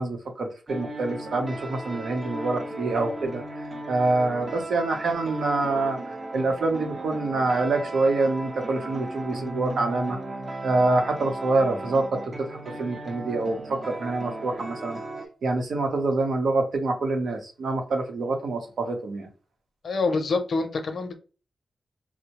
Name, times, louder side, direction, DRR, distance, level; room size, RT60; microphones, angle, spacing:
voice 1, 0.0-10.2 10.6-15.0 15.4-19.3, right 3 dB, 80° right, 3 dB, 0.8 m, -26 dB
sound 1, 0.7-15.3, right 1 dB, 35° right, 0.6 m, -36 dB
voice 2, 19.8-21.2, left 3 dB, 65° left, 7 dB, 0.6 m, -26 dB
4.4 x 2.1 x 2.9 m, 0.35 s
wide cardioid pair, 95°, 0 cm